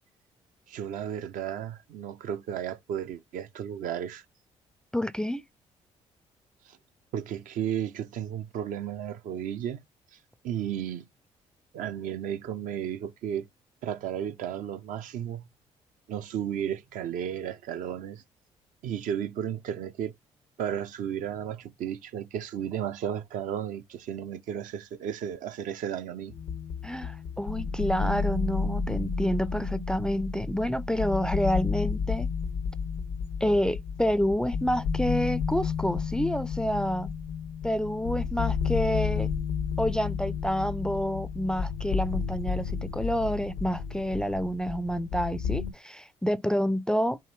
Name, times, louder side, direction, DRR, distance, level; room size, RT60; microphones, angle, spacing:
voice 1, 0.7-4.2 7.1-9.8 10.4-11.0 11.7-13.5 13.8-15.4 16.1-18.2 18.8-20.1 20.6-26.3, right 9 dB, 60° right, 0.5 m, -33 dB
voice 2, 4.9-5.4 26.8-32.3 33.4-37.1 37.6-39.3 39.8-47.2, equal, 5° left, 0.4 m, -28 dB
sound 1, 26.3-45.7, left 5 dB, 65° left, 0.5 m, -32 dB
4.8 x 2.6 x 3.1 m
hypercardioid pair, 50°, 15 cm